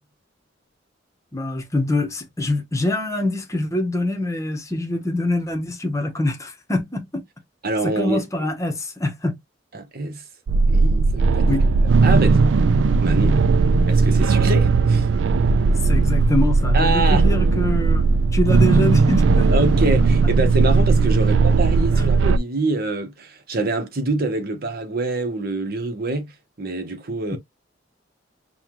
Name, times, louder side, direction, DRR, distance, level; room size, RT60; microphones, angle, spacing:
voice 1, 1.3-7.2 7.8-9.4 11.5-11.6 15.8-19.6 21.1-21.2 21.9-22.0 27.3-27.4, left 2 dB, 15° left, 0.9 m, -24 dB
voice 2, 7.6-8.2 9.7-10.2 10.7-12.4 13.0-13.4 13.9-15.1 16.7-17.3 19.5-26.3 26.6-27.4, right 2 dB, 50° right, 1.0 m, -25 dB
sound 1, 10.5-22.4, right 4 dB, 70° right, 0.3 m, -17 dB
5.6 x 2.3 x 3.0 m
head